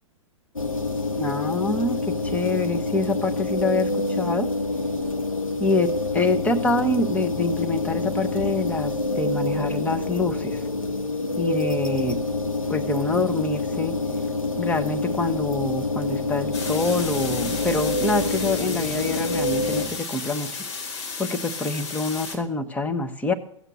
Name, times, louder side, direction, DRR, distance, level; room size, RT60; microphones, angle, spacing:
sound 1, 0.6-19.9, left 2 dB, 90° left, 1.6 m, -27 dB
voice 1, 1.2-4.5 5.6-10.6 11.4-12.2 12.7-13.9 14.6-20.6 20.9-23.3, left 3 dB, 10° left, 6 dB, 1.2 m, -26 dB
sound 2, 16.5-22.4, left 4 dB, 55° left, 4.0 m, -33 dB
15.0 x 8.0 x 7.7 m, 0.69 s
figure-of-eight pair, 110°, 17 cm